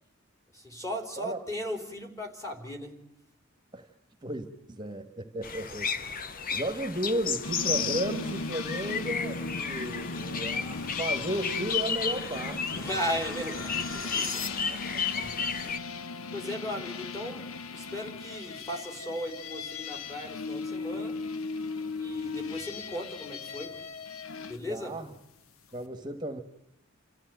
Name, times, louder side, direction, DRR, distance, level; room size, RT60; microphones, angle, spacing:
voice 1, 0.5-3.0 12.8-14.9 15.1-15.5 16.3-21.2 22.0-23.8 24.5-25.0, equal, 15° left, 2 dB, 3.5 m, -37 dB
voice 2, 4.2-12.8 15.1-15.3 15.6-15.8 24.7-25.1 25.7-26.4, right 1 dB, 20° right, 7 dB, 1.4 m, -34 dB
sound 1, 5.4-15.8, left 6 dB, 45° left, 0.9 m, -33 dB
sound 2, 7.4-24.6, left 4 dB, 90° left, 0.8 m, -38 dB
sound 3, 10.0-15.0, left 3 dB, 75° left, 2.0 m, -42 dB
28.5 x 14.5 x 9.2 m, 0.85 s
head